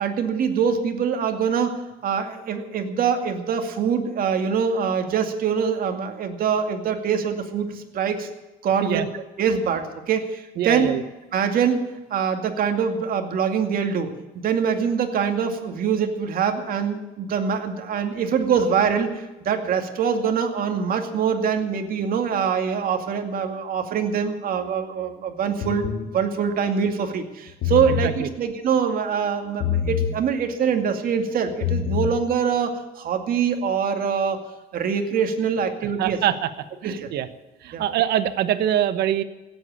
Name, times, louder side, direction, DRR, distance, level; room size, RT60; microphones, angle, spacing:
voice 1, 0.0-1.7 2.0-8.3 8.6-9.1 9.4-10.9 11.3-11.8 12.1-34.4 34.7-36.2 36.8-37.1 37.7-37.8, right 6 dB, 60° right, 5 dB, 2.3 m, -24 dB
voice 2, 10.6-11.0 27.9-28.3 36.0-36.5 36.8-37.3 37.6-39.2, right 11 dB, 75° right, 12 dB, 1.2 m, -24 dB
sound 1, 25.6-26.1 27.5-28.1 29.6-30.1 31.5-32.1, left 8 dB, 80° left, 2.4 m, -25 dB
17.0 x 8.1 x 8.5 m, 1.0 s
cardioid pair, 110°, 17 cm